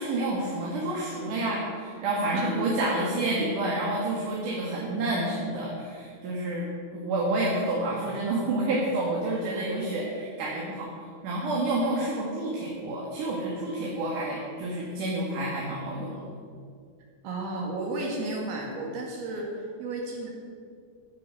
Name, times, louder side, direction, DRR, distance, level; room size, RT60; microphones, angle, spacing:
voice 1, 0.0-6.7 6.9-10.9 11.2-16.2, right 2 dB, 60° right, -4 dB, 3.2 m, -29 dB
voice 2, 2.3-2.6 17.2-20.3, right 2 dB, 85° right, -1 dB, 4.0 m, -33 dB
15.5 x 8.2 x 6.8 m, 2.3 s
omnidirectional pair, 4.3 m